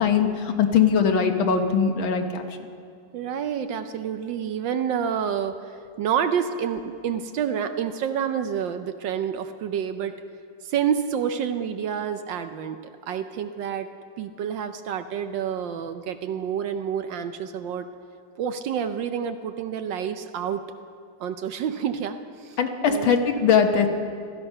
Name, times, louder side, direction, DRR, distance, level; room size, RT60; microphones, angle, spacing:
voice 1, 0.0-2.4 22.6-23.9, left 6 dB, 70° left, 5 dB, 1.8 m, -21 dB
voice 2, 3.1-10.2 10.6-13.9 14.2-17.9 18.4-20.6 21.2-23.1, right 8 dB, 70° right, 9 dB, 1.2 m, -28 dB
17.5 x 13.5 x 5.5 m, 2.3 s
omnidirectional pair, 2.3 m